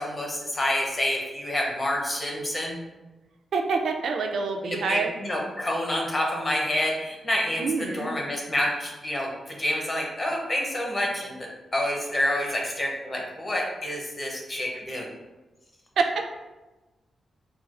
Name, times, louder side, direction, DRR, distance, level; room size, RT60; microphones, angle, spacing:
voice 1, 0.0-2.8 4.6-15.0, left 1 dB, 25° left, -1 dB, 0.6 m, -28 dB
voice 2, 3.5-5.1 7.6-8.1 16.0-16.1, right 4 dB, 70° right, 3 dB, 0.3 m, -26 dB
4.2 x 2.3 x 2.3 m, 1.1 s
wide cardioid pair, 150°, 0 cm